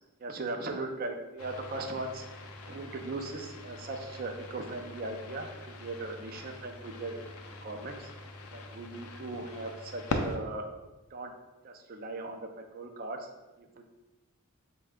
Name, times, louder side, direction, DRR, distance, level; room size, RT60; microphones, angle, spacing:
voice 1, 0.2-2.2 2.7-8.1 8.5-10.8 11.1-11.3 11.6-13.3 13.6-13.8, right 2 dB, 40° right, 4 dB, 0.4 m, -39 dB
sound 1, 1.4-10.4, left 2 dB, 75° left, 0.4 m, -41 dB
4.0 x 2.2 x 3.5 m, 1.1 s
head